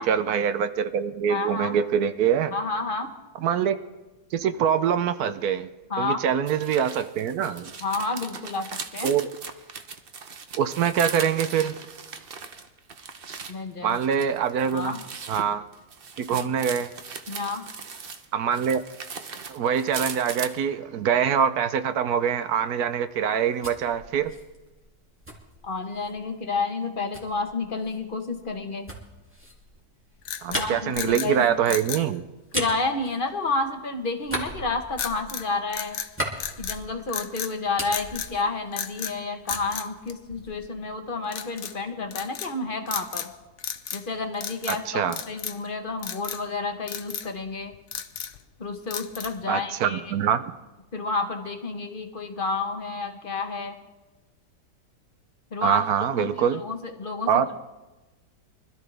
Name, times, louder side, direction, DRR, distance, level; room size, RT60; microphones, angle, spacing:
voice 1, 0.0-2.5 3.4-3.8 4.3-5.7 6.0-7.7 9.0-9.3 10.6-11.7 13.8-15.0 15.3-15.6 16.2-16.9 18.3-18.8 19.5-24.3 30.4-32.2 44.7-45.2 49.5-50.4 55.6-56.6 57.3-57.5, right 8 dB, 65° right, 11 dB, 1.1 m, -24 dB
voice 2, 1.3-1.8 2.5-3.2 5.9-6.2 7.8-9.1 13.5-14.0 14.7-15.0 16.3-16.5 17.3-17.7 25.6-28.9 30.5-31.5 32.5-36.0 36.6-43.3 43.9-47.8 48.6-50.2 50.9-53.8 55.5-55.8 56.2-57.5, left 3 dB, 35° left, 5 dB, 1.1 m, -30 dB
sound 1, 6.5-13.5 13.9-18.2 18.5-20.5, right 5 dB, 45° right, 0.8 m, -38 dB
sound 2, 23.2-26.2 27.1-33.8 34.2-37.2 37.5-39.2 39.5-40.8, equal, 5° right, 2.2 m, -38 dB
sound 3, 30.2-31.3 31.6-32.1 35.0-35.5 35.7-36.8 37.1-37.5 37.9-38.3 38.7-39.2 39.5-40.7 41.3-41.7 42.1-42.5 42.9-43.3 43.6-44.1 44.3-44.8 45.1-45.7 46.0-46.4 46.9-47.3 47.7-48.4 48.9-49.4, left 8 dB, 55° left, 0.9 m, -34 dB
24.5 x 13.5 x 3.4 m, 1.1 s
omnidirectional pair, 1.8 m